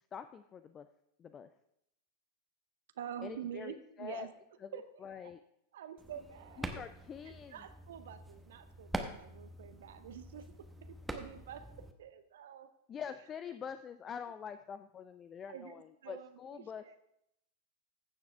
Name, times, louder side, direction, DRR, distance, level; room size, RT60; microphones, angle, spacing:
voice 1, 0.1-0.9 1.2-1.5 3.2-4.3 4.6-5.4 6.6-7.6 12.9-17.0, left 7 dB, 25° left, 11 dB, 0.4 m, -45 dB
voice 2, 3.0-4.3 4.7-4.8 5.2-5.3 5.7-6.7 7.3-10.5 10.9-11.6 12.0-12.7 15.5-17.0, right 9 dB, 60° right, 10 dB, 0.7 m, -47 dB
sound 1, 6.0-11.9, right 1 dB, 5° right, 0.9 m, -45 dB
15.5 x 7.1 x 3.4 m, 0.81 s
figure-of-eight pair, 90°, 0 cm